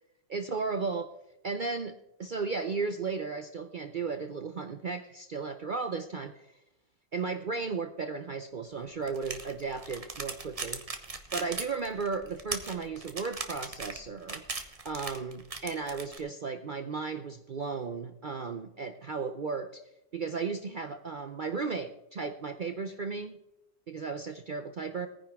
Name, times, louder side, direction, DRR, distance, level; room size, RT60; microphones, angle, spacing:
voice 1, 0.3-1.1 1.4-6.5 7.1-10.8 11.3-14.4 14.8-19.8 20.1-23.4 23.9-25.1, right 4 dB, 60° right, 8 dB, 0.5 m, -35 dB
sound 1, 9.1-16.2, right 3 dB, 25° right, 0.9 m, -38 dB
18.0 x 9.9 x 3.5 m, 0.90 s
omnidirectional pair, 1.6 m